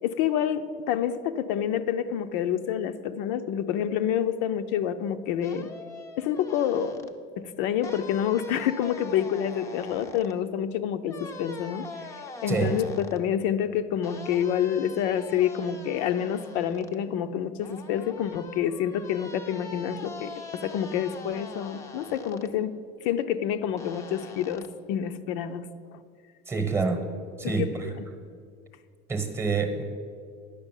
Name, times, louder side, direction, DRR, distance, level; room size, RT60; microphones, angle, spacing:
voice 1, 0.0-5.7 6.2-7.1 7.4-11.9 12.4-22.8 23.0-25.7 25.9-26.0 27.4-27.7, left 9 dB, 75° left, 9 dB, 0.6 m, -28 dB
sound 1, 5.4-7.1 7.8-10.3 11.1-13.2 14.0-17.0 17.6-22.5 23.8-24.7, left 3 dB, 15° left, 0.5 m, -43 dB
voice 2, 26.5-27.1 27.4-27.9 29.1-29.8, right 4 dB, 15° right, 6 dB, 1.0 m, -27 dB
10.5 x 6.2 x 8.9 m, 2.1 s
cardioid pair, 175°, 20 cm